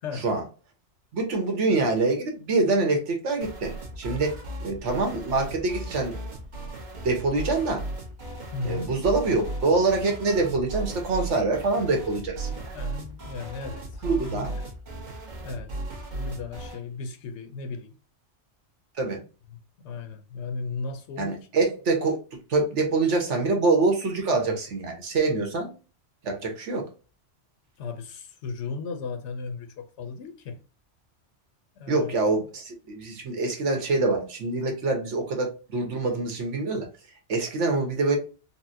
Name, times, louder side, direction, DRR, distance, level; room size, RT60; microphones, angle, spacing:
voice 1, 1.1-6.1 7.0-7.8 8.6-12.7 14.0-14.5 19.0-19.2 21.2-22.2 22.5-25.7 26.2-26.8 31.9-36.9 37.3-38.2, right 3 dB, 80° right, 1.3 m, -25 dB
sound 1, 3.4-16.8, right 2 dB, 45° right, 1.0 m, -36 dB
voice 2, 8.5-9.0 12.7-14.5 15.4-15.8 16.1-17.9 19.8-21.4 27.8-30.6 31.8-32.1, left 4 dB, 75° left, 0.9 m, -35 dB
4.1 x 2.0 x 2.6 m
omnidirectional pair, 1.2 m